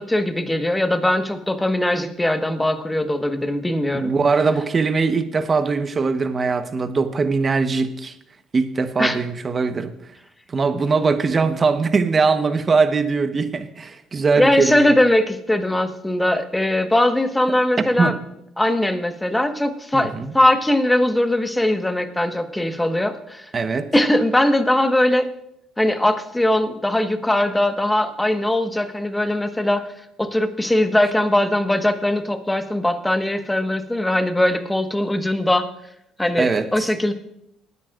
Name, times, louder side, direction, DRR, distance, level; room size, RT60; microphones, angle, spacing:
voice 1, 0.0-4.1 9.0-9.2 14.4-18.1 18.6-23.4 23.9-25.3 25.8-29.8 30.2-35.7 36.2-37.1, left 1 dB, 10° left, 8 dB, 1.4 m, -20 dB
voice 2, 3.9-8.1 8.5-9.9 10.5-14.9 18.0-18.2 19.9-20.3 23.5-23.9 36.4-36.9, right 4 dB, 35° right, 9 dB, 1.1 m, -21 dB
19.5 x 9.7 x 2.5 m, 0.78 s
supercardioid pair, 65°, 0 cm